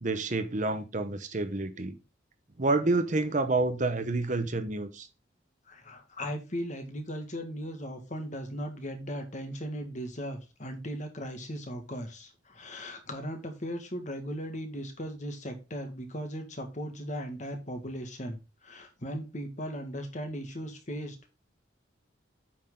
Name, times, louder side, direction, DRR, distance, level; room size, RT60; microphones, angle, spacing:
voice 1, 0.0-2.0 2.6-5.1, right 2 dB, 40° right, 0.9 m, -28 dB
voice 2, 5.7-21.3, equal, 40° left, 1.8 m, -38 dB
8.6 x 6.1 x 3.7 m
head